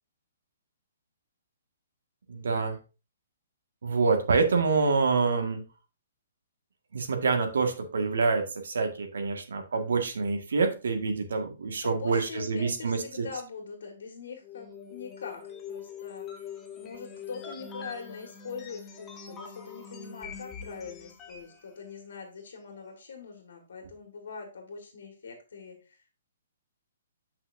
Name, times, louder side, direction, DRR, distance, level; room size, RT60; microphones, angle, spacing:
voice 1, 2.3-2.8 3.8-5.6 6.9-13.3, right 4 dB, 85° right, 4 dB, 1.8 m, -26 dB
voice 2, 11.8-16.3 16.7-26.2, left 5 dB, 65° left, 3 dB, 1.8 m, -43 dB
sound 1, 14.4-21.6, left 6 dB, 10° left, 0.7 m, -43 dB
8.5 x 5.7 x 2.7 m, 0.32 s
hypercardioid pair, 180°, 0 cm